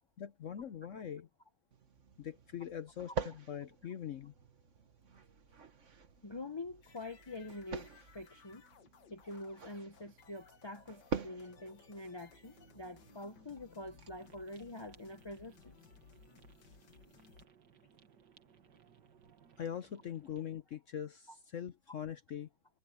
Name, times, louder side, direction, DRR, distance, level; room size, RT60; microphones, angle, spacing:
voice 1, 0.2-1.3 2.2-4.3 19.6-22.5, left 9 dB, 60° left, 0.9 m, -42 dB
sound 1, 1.7-14.1, right 5 dB, 45° right, 1.6 m, -47 dB
voice 2, 6.2-8.6 9.1-15.8 21.3-21.4, left 2 dB, 35° left, 0.4 m, -46 dB
sound 2, 6.8-17.5, left 6 dB, 85° left, 2.0 m, -62 dB
sound 3, 14.2-20.5, right 7 dB, 85° right, 2.1 m, -64 dB
omnidirectional pair, 1.8 m